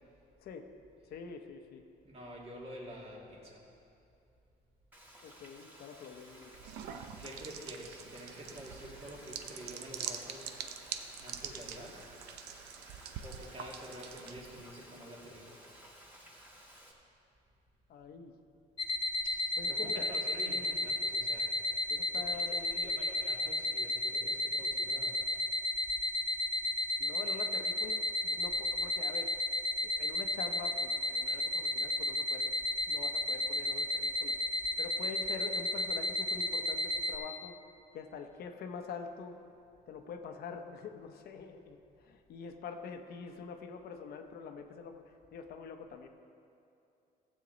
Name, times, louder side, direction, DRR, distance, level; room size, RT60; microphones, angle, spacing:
voice 1, 1.1-1.8 5.2-6.5 7.2-7.4 17.9-18.3 19.6-20.1 21.9-22.9 27.0-29.3 29.9-32.5 32.9-34.4 34.8-37.6 37.9-39.4 39.9-46.1, left 6 dB, 65° left, 5 dB, 0.9 m, -45 dB
voice 2, 2.0-3.6 7.2-10.5 11.2-12.0 13.2-15.6 19.2-19.3 19.6-21.5 22.1-25.2, equal, 35° right, -2 dB, 2.3 m, -48 dB
Frying (food), 4.9-16.9, equal, 10° right, 1.7 m, -55 dB
sound 1, 6.5-14.6, right 8 dB, 80° right, 0.6 m, -45 dB
sound 2, 18.8-37.2, left 1 dB, 30° left, 0.5 m, -33 dB
15.5 x 7.6 x 4.0 m, 2.6 s
cardioid pair, 110°, 17 cm